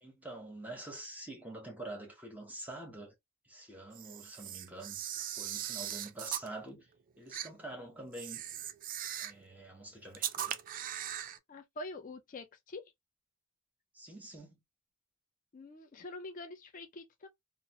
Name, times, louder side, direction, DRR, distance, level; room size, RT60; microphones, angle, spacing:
voice 1, 0.0-3.1 3.4-6.9 7.2-8.4 9.2-10.6 13.9-14.6, right 2 dB, 10° right, 0.8 m, -46 dB
Camera, 3.9-6.5 7.3-7.5 8.1-9.4 10.1-11.4, right 11 dB, 40° right, 0.3 m, -39 dB
voice 2, 11.5-12.8 15.5-17.3, left 2 dB, 40° left, 0.4 m, -45 dB
2.6 x 2.0 x 2.8 m
head